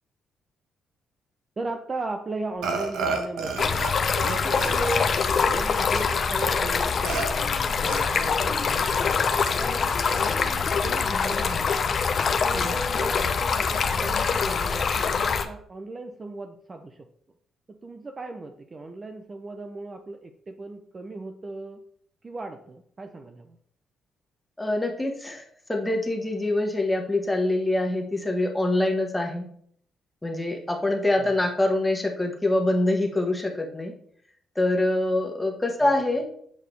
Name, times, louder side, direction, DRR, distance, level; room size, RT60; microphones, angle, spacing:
voice 1, 1.6-3.8 4.2-11.7 12.4-17.1 17.7-21.8 22.2-23.6 31.2-31.3 35.8-35.9, right 2 dB, 30° right, 6 dB, 0.6 m, -37 dB
Burping eructation, 2.6-6.0 6.4-6.5 7.1-7.3 7.8-8.4, right 4 dB, 80° right, 1.0 m, -31 dB
Stream, 3.6-15.5, left 5 dB, 50° left, 0.6 m, -24 dB
voice 2, 24.6-25.4 25.7-29.4 30.2-33.9 34.5-36.2, left 2 dB, 10° left, 2 dB, 1.4 m, -25 dB
8.1 x 4.7 x 3.3 m, 0.63 s
cardioid pair, 90°, 0 cm